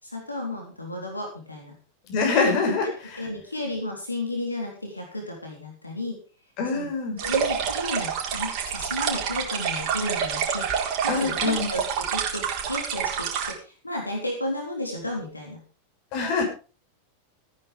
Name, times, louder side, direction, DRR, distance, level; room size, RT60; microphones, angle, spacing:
voice 1, 0.0-1.7 2.2-2.3 3.2-6.2 6.7-6.9 7.2-15.6, left 1 dB, 85° left, 1 dB, 3.5 m, -33 dB
voice 2, 2.1-3.3 6.6-7.2 11.1-11.7 16.1-16.4, left 4 dB, 45° left, 3 dB, 6.3 m, -25 dB
sound 1, 7.2-13.5, right 7 dB, 45° right, 4.3 m, -27 dB
16.5 x 9.8 x 5.2 m, 0.36 s
figure-of-eight pair, 90°, 0 cm